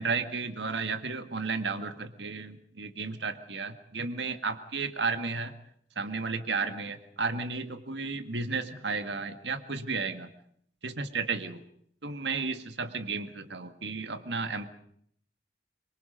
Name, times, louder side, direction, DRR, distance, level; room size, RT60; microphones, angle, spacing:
voice 1, 0.0-5.5 6.0-10.3 10.8-11.6 12.0-14.7, right 4 dB, 80° right, 8 dB, 1.9 m, -33 dB
25.5 x 23.0 x 5.3 m, 0.67 s
head